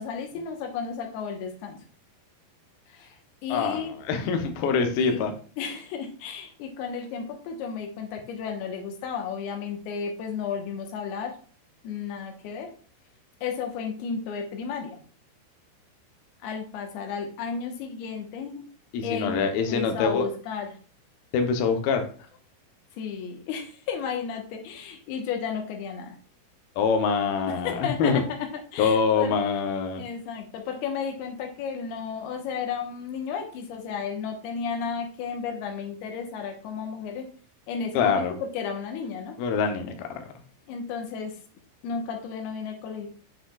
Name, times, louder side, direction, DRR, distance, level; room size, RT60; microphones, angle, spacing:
voice 1, 0.0-1.8 2.9-3.2 3.4-4.0 4.9-11.4 11.8-12.7 13.4-15.0 16.4-18.6 19.0-20.7 23.0-26.2 27.5-29.4 30.0-37.3 37.7-39.4 40.7-41.4 41.8-43.1, left 6 dB, 70° left, 3 dB, 2.6 m, -33 dB
voice 2, 3.5-5.3 18.9-20.3 21.3-22.0 26.8-28.2 28.8-30.0 37.9-38.3 39.4-40.1, left 5 dB, 85° left, 5 dB, 2.0 m, -24 dB
7.9 x 6.3 x 2.3 m, 0.41 s
omnidirectional pair, 5.5 m